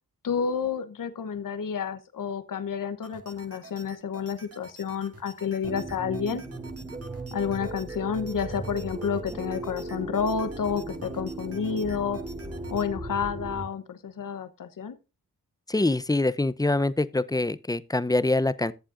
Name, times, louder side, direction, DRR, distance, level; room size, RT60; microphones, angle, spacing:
voice 1, 0.2-6.4 7.3-12.2 12.7-15.0, left 6 dB, 60° left, 1.0 m, -30 dB
sound 1, 3.0-12.9, right 2 dB, 40° right, 1.7 m, -50 dB
sound 2, 5.6-13.6, right 2 dB, 20° right, 2.4 m, -37 dB
voice 2, 15.7-18.7, left 2 dB, 10° left, 0.6 m, -25 dB
14.0 x 7.4 x 2.5 m
supercardioid pair, 40°, 37 cm